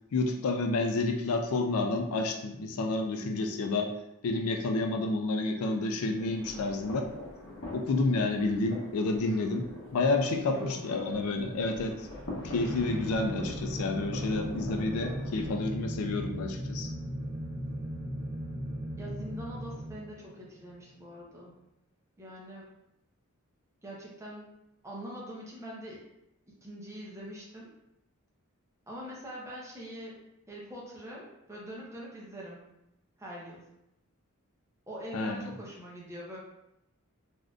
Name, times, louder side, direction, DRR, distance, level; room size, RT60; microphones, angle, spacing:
voice 1, 0.1-3.9 4.2-7.1 7.7-12.1 12.4-16.9 35.1-35.5, left 3 dB, 80° left, 4 dB, 0.4 m, -30 dB
sound 1, 6.1-15.5, left 1 dB, 60° left, 0.9 m, -44 dB
voice 2, 10.4-11.1 19.0-21.5 22.2-22.7 23.8-24.5 24.8-26.0 26.6-27.7 28.9-30.2 30.5-32.6 33.2-33.6 34.9-36.4, equal, 15° right, -4 dB, 0.6 m, -43 dB
sound 2, 12.1-20.5, equal, 65° right, 0.7 m, -37 dB
3.5 x 2.5 x 2.3 m, 0.86 s
head